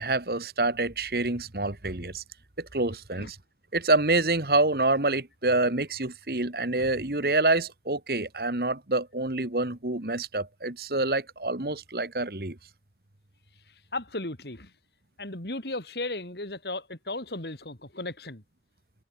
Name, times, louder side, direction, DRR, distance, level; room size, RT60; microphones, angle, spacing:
voice 1, 0.0-2.2 2.6-3.4 3.7-12.6, right 2 dB, 55° right, 1.9 m, -27 dB
voice 2, 13.9-14.7 15.2-18.4, left 2 dB, 65° left, 4.0 m, -35 dB
head